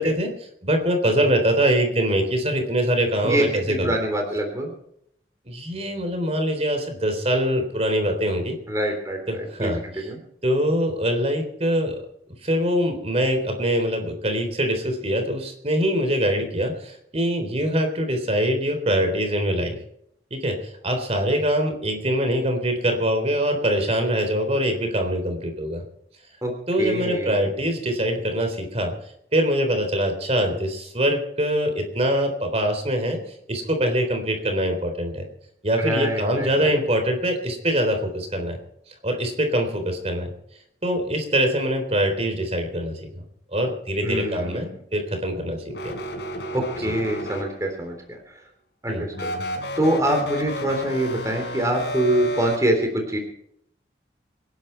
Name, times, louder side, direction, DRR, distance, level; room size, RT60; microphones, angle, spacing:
voice 1, 0.0-4.0 5.5-8.6 9.3-10.1 10.4-12.0 12.4-19.8 20.3-25.8 26.7-28.9 29.3-33.2 33.5-35.3 35.6-38.6 39.0-40.3 40.8-43.2 43.5-45.9 46.8-46.9 48.9-49.1, equal, 35° right, 6 dB, 3.7 m, -23 dB
voice 2, 3.2-4.7 8.7-10.2 26.4-26.5 26.8-27.4 35.8-36.8 44.0-44.7 46.5-48.2 48.8-49.3 49.8-53.2, right 1 dB, 20° right, 2 dB, 3.4 m, -25 dB
sound 1, 45.7-47.9 49.1-52.6, left 1 dB, 70° left, 4.6 m, -31 dB
26.5 x 11.5 x 4.6 m, 0.72 s
head